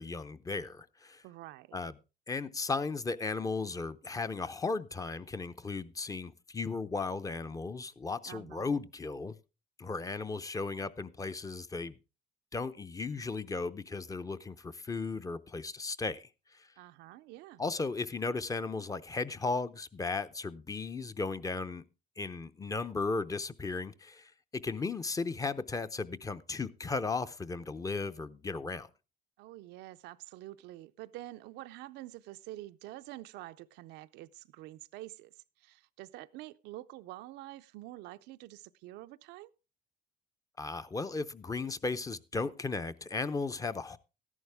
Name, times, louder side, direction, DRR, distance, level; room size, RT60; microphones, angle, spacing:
voice 1, 0.0-1.2 1.7-1.9 2.3-9.3 9.8-12.0 12.5-16.7 17.6-21.8 22.2-28.9 40.6-44.0, left 4 dB, 20° left, 0.6 m, -36 dB
voice 2, 1.2-1.8 8.3-8.8 16.8-17.6 29.4-39.5, right 16 dB, 90° right, 0.5 m, -47 dB
13.5 x 11.0 x 3.4 m
cardioid pair, 110°, 17 cm